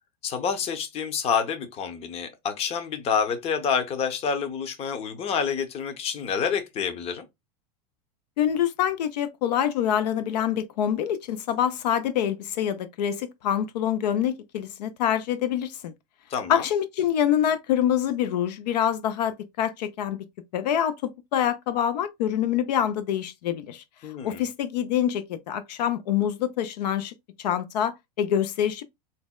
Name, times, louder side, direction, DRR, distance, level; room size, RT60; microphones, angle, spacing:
voice 1, 0.2-7.2 16.3-16.6 24.0-24.4, left 6 dB, 30° left, 0.7 m, -28 dB
voice 2, 8.4-15.9 16.5-20.2 20.5-23.8 24.2-28.8, left 10 dB, 85° left, 0.5 m, -26 dB
3.9 x 2.1 x 2.2 m
supercardioid pair, 130°, 21 cm